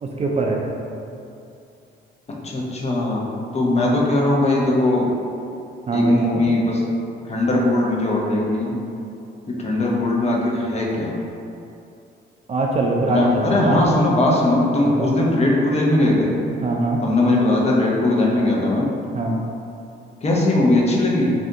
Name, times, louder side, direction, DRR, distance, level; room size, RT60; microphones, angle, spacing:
voice 1, 0.0-0.6 5.9-6.4 12.5-13.9 14.8-15.1 16.6-17.0 19.1-19.4, right 2 dB, 35° right, -1 dB, 0.3 m, -22 dB
voice 2, 2.4-3.3 3.5-5.1 5.9-6.8 7.3-8.8 9.5-11.2 13.1-16.4 17.0-18.9 20.2-21.3, left 2 dB, 35° left, -3 dB, 0.6 m, -19 dB
2.6 x 2.6 x 3.4 m, 2.6 s
cardioid pair, 90°, 20 cm